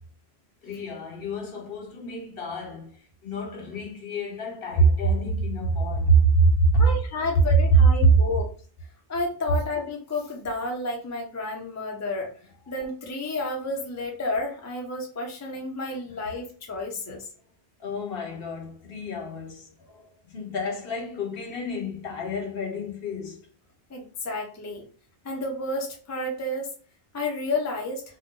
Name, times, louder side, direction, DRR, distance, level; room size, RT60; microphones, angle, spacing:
voice 1, 0.6-2.9 3.2-6.9 16.1-16.3 17.1-17.2 17.8-23.4, right 3 dB, 65° left, 0.9 m, -26 dB
voice 2, 6.8-8.5 9.1-12.3 12.7-17.2 23.9-24.8 25.2-26.7 27.1-28.0, left 2 dB, 20° left, 0.5 m, -31 dB
2.6 x 2.2 x 3.6 m
omnidirectional pair, 1.1 m